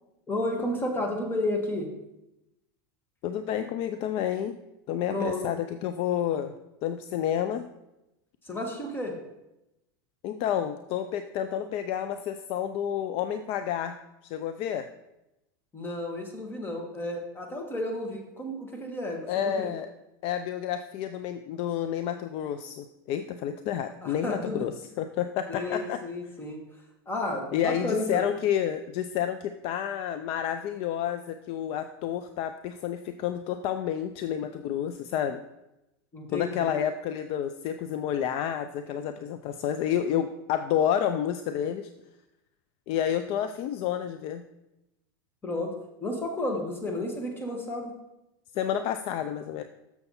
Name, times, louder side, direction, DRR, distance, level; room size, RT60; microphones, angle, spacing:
voice 1, 0.3-1.9 5.1-5.4 8.4-9.2 15.7-19.7 24.0-24.6 25.5-26.6 27.0-28.2 36.1-36.8 45.4-45.7 46.0-47.9, left 1 dB, 15° left, 2 dB, 1.7 m, -32 dB
voice 2, 3.2-4.6 4.9-6.5 6.8-7.7 10.2-14.0 14.2-14.9 19.3-19.9 20.2-26.0 27.5-35.4 36.3-41.9 42.9-44.4 48.5-49.6, left 9 dB, 50° left, 10 dB, 0.4 m, -30 dB
7.0 x 6.7 x 4.2 m, 0.91 s
supercardioid pair, 120°, 13 cm